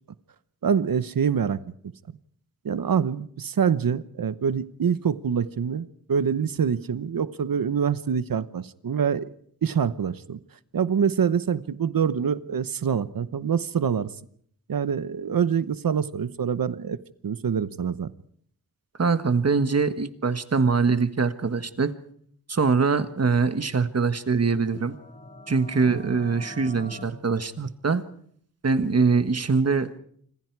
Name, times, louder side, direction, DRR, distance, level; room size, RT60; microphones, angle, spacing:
voice 1, 0.6-1.6 2.6-9.3 9.6-10.4 10.7-14.1 14.7-18.1 25.9-26.2, right 7 dB, 70° right, 15 dB, 1.0 m, -25 dB
voice 2, 19.0-21.9 22.5-24.9 25.5-28.0 28.6-30.0, right 4 dB, 45° right, 11 dB, 1.5 m, -23 dB
sound 1, 24.5-27.0, left 1 dB, 25° left, 5.9 m, -44 dB
27.5 x 25.5 x 4.7 m, 0.63 s
wide cardioid pair, 110°, 35 cm